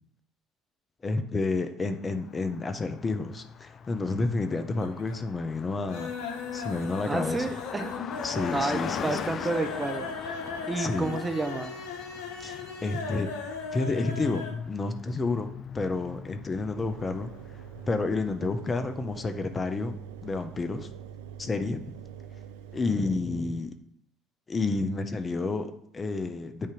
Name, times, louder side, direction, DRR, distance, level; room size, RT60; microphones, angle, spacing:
voice 1, 1.0-6.1 6.5-7.5 8.2-9.2 10.8-11.2 12.4-13.3 13.7-17.3 17.9-20.0 20.2-20.9 21.4-22.0 22.7-23.7 24.5-26.7, left 3 dB, 30° left, 8 dB, 0.8 m, -30 dB
Car passing by, 2.1-18.2, left 7 dB, 45° left, 0.3 m, -41 dB
sound 1, 3.8-4.5 4.7-5.3 5.6-14.6 14.9-15.0 15.3-15.4, left 5 dB, 80° left, 1.1 m, -37 dB
voice 2, 7.1-7.9 8.5-11.8, right 3 dB, 25° right, 8 dB, 0.8 m, -31 dB
Engine, 16.8-23.2, right 8 dB, 85° right, 0.4 m, -44 dB
8.7 x 2.9 x 5.0 m, 0.69 s
hypercardioid pair, 70°, 0 cm